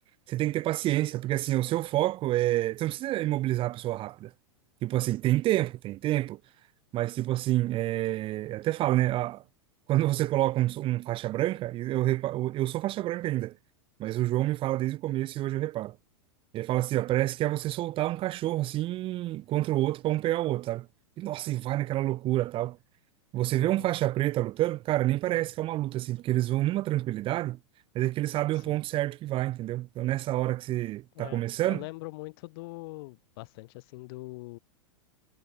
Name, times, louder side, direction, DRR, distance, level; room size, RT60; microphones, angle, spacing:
voice 1, 0.3-4.3 4.8-6.4 6.9-9.4 9.9-13.5 14.0-16.0 16.5-20.9 21.2-22.8 23.3-27.6 27.9-31.8, right 15 dB, 35° right, 1.2 m, -28 dB
voice 2, 23.6-23.9 28.5-28.8 31.2-34.6, left 23 dB, 55° left, 7.0 m, -42 dB
figure-of-eight pair, 95°, 15 cm